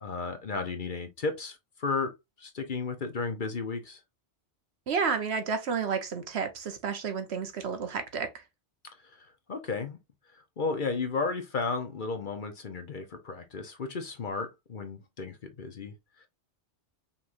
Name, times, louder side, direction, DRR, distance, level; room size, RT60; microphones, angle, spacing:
voice 1, 0.0-4.0 9.0-10.0 10.3-15.9, left 4 dB, 50° left, 0.9 m, -34 dB
voice 2, 4.9-8.4, right 5 dB, 65° right, 1.1 m, -31 dB
5.5 x 3.1 x 2.5 m
omnidirectional pair, 1.2 m